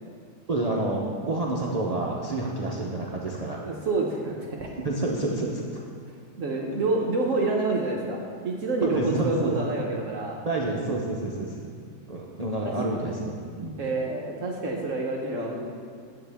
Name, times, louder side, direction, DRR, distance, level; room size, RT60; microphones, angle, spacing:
voice 1, 0.5-3.6 4.8-5.8 8.8-9.6 10.4-11.7 12.1-13.8, right 2 dB, 90° right, -3 dB, 0.3 m, -28 dB
voice 2, 3.6-4.7 6.4-8.2 8.4-10.4 12.6-12.7 13.8-15.7, right 2 dB, 60° right, 0 dB, 1.0 m, -28 dB
9.7 x 7.4 x 3.4 m, 2.3 s
omnidirectional pair, 1.8 m